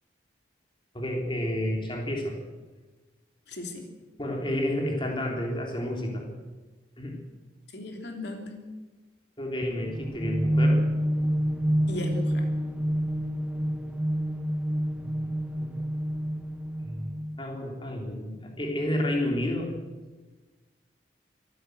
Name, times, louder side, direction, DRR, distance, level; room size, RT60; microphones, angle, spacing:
voice 1, 0.9-2.4 4.2-6.3 7.0-7.2 9.4-10.8 15.0-15.3 15.6-15.8 16.8-17.1 17.4-19.7, left 1 dB, 25° left, 1 dB, 3.4 m, -30 dB
voice 2, 3.5-3.9 7.7-8.6 11.9-12.5, left 1 dB, 65° left, 3 dB, 3.3 m, -36 dB
sound 1, 9.6-17.4, equal, 5° right, 0.9 m, -28 dB
24.5 x 14.5 x 7.9 m, 1.2 s
head